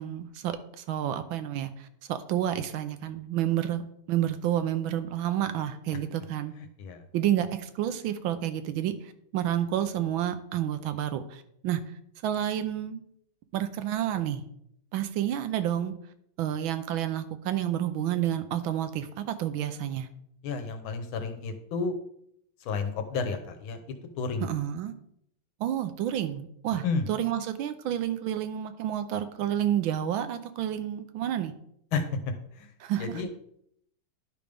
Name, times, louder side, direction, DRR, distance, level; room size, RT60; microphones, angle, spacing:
voice 1, 0.0-3.8 4.1-6.5 7.1-11.8 12.2-13.0 13.5-14.4 14.9-15.9 16.4-20.1 24.4-24.9 25.6-31.5 32.8-33.2, right 11 dB, 80° right, 10 dB, 1.4 m, -30 dB
voice 2, 6.6-7.0 20.4-22.0 22.6-23.8 24.2-24.5 26.8-27.1 31.9-32.0 32.5-32.7 33.0-33.3, left 4 dB, 80° left, 7 dB, 1.7 m, -31 dB
11.0 x 5.2 x 3.4 m, 0.72 s
omnidirectional pair, 2.2 m